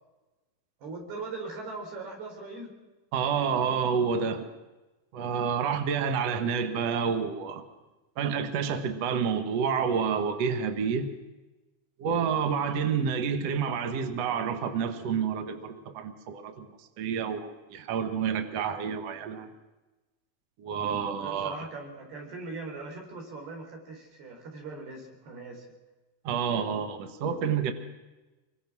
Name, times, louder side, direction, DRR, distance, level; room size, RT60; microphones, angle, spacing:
voice 1, 0.8-2.8 5.7-6.1 21.2-25.7, right 3 dB, 55° right, 2 dB, 5.9 m, -40 dB
voice 2, 3.1-4.5 5.1-7.6 8.2-11.1 12.0-16.7 17.0-19.5 20.6-21.6 26.2-27.7, right 6 dB, 75° right, 7 dB, 1.5 m, -29 dB
26.0 x 23.0 x 6.2 m, 1.1 s
omnidirectional pair, 5.7 m